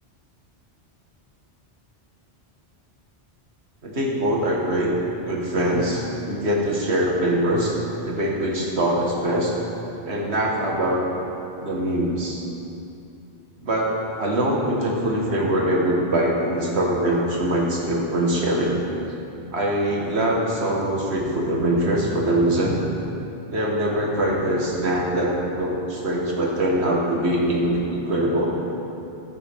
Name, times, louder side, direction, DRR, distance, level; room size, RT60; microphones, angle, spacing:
voice 1, 3.8-4.9 5.2-7.8 8.0-9.6 10.0-11.0 11.6-12.4 13.6-18.8 19.5-22.8 23.5-28.6, right 1 dB, 75° right, -2 dB, 1.8 m, -23 dB
14.0 x 8.6 x 3.6 m, 2.8 s
omnidirectional pair, 1.1 m